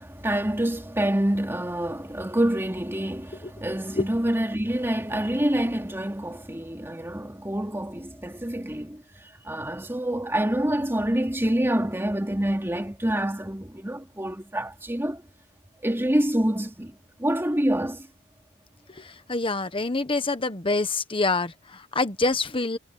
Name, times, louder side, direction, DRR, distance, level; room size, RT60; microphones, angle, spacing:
voice 1, 0.0-9.0 9.4-15.2 15.8-18.1, right 1 dB, 10° right, 2.9 m, -27 dB
voice 2, 18.9-22.8, left 3 dB, 25° left, 1.2 m, -26 dB
head